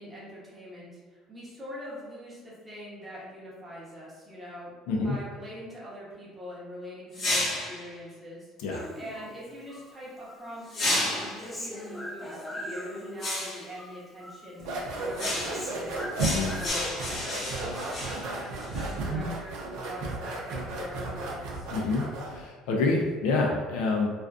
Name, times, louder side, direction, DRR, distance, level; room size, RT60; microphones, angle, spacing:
voice 1, 0.0-8.5 9.0-21.7, equal, 10° right, -7 dB, 0.8 m, -43 dB
voice 2, 4.9-5.2 8.6-8.9 16.2-16.5 21.7-24.1, left 3 dB, 85° left, 0 dB, 0.5 m, -27 dB
sound 1, 7.1-7.9 10.7-11.5 13.2-13.7 15.2-15.7 16.2-18.9, left 1 dB, 35° left, 0.7 m, -31 dB
Human voice, 8.7-9.9 10.2-13.4 13.7-14.5 14.7-16.7, equal, 5° left, 0.4 m, -41 dB
sound 2, 14.6-22.4, right 2 dB, 80° right, 0.5 m, -34 dB
2.4 x 2.4 x 2.3 m, 1.4 s
cardioid pair, 145°, 0 cm